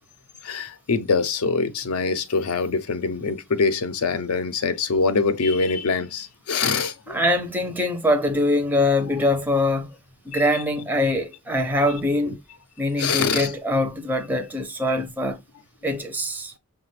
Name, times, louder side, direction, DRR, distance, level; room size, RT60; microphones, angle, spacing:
voice 1, 0.4-7.2 10.3-10.4 13.0-13.5, left 4 dB, 70° left, 0.5 m, -24 dB
voice 2, 7.1-9.9 10.3-12.4 12.8-15.4 15.8-16.5, left 1 dB, 10° right, 0.4 m, -23 dB
5.7 x 2.2 x 3.1 m
head